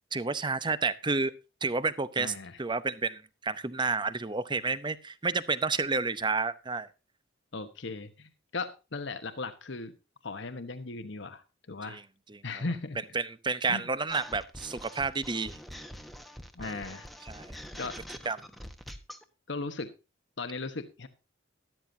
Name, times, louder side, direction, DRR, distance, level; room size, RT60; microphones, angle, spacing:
voice 1, 0.1-1.3 1.6-6.9 11.8-12.0 12.3-12.4 13.1-15.5 16.6-16.9 17.3-17.6 18.2-18.4, right 4 dB, 25° right, 15 dB, 0.8 m, -30 dB
voice 2, 2.2-2.6 7.5-9.9 10.2-12.0 12.4-13.0 13.7-13.9 16.5-17.1 17.7-17.9 19.5-19.9 20.4-21.1, left 3 dB, 65° left, 9 dB, 1.1 m, -37 dB
sound 1, 14.1-19.2, equal, ahead, 1.2 m, -45 dB
13.0 x 12.5 x 2.7 m, 0.30 s
head